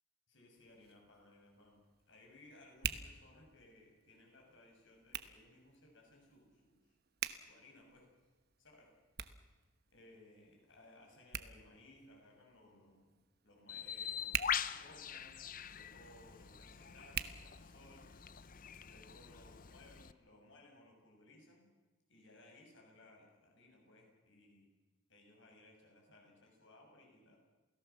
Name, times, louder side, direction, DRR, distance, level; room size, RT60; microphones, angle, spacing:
voice 1, 0.3-7.0 7.4-8.1 8.6-8.9 9.3-9.6 9.9-18.0 18.8-21.7 22.1-24.7 25.1-27.4, left 2 dB, 65° left, 1 dB, 7.4 m, -62 dB
Hands, 0.6-18.2, right 9 dB, 50° right, 1.1 m, -48 dB
Bird, 13.7-20.1, left 8 dB, 40° left, 0.7 m, -43 dB
28.5 x 17.5 x 7.2 m, 1.2 s
head